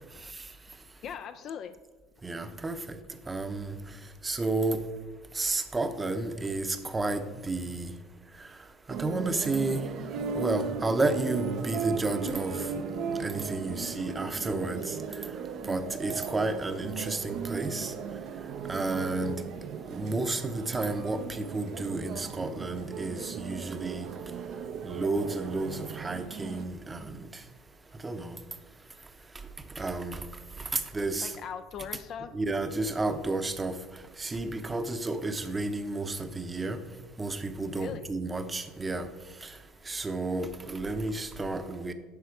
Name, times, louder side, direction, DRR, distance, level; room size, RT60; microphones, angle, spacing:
voice 1, 1.0-1.7 31.2-32.3 37.6-38.2, left 7 dB, 50° left, 0.4 m, -40 dB
voice 2, 2.2-2.7 3.3-3.7 4.2-4.8 5.4-6.7 6.9-7.9 8.9-9.8 10.3-12.5 13.2-14.8 15.7-17.9 18.7-19.4 19.9-24.1 24.9-25.7 26.0-27.0 28.0-28.3 29.8-30.2 30.9-31.3 32.3-33.7 34.2-36.8 37.2-39.0 39.9-41.9, right 2 dB, 20° right, 0.7 m, -31 dB
sound 1, 8.9-26.6, right 6 dB, 60° right, 0.6 m, -37 dB
10.5 x 4.2 x 4.7 m
supercardioid pair, 85°, 0 cm